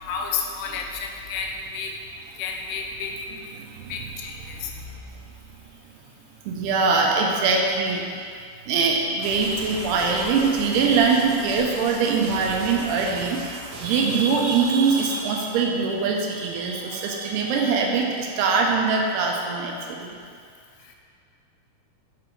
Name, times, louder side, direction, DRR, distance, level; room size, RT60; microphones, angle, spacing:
voice 1, 0.0-2.0 2.4-3.2 3.9-4.7 20.8-21.0, left 5 dB, 80° left, 2 dB, 2.5 m, -31 dB
voice 2, 6.5-8.0 8.7-20.2, right 4 dB, 90° right, 0 dB, 2.8 m, -22 dB
sound 1, 9.2-15.2, right 2 dB, 70° right, 2.1 m, -37 dB
7.2 x 5.1 x 4.5 m, 2.3 s
omnidirectional pair, 4.5 m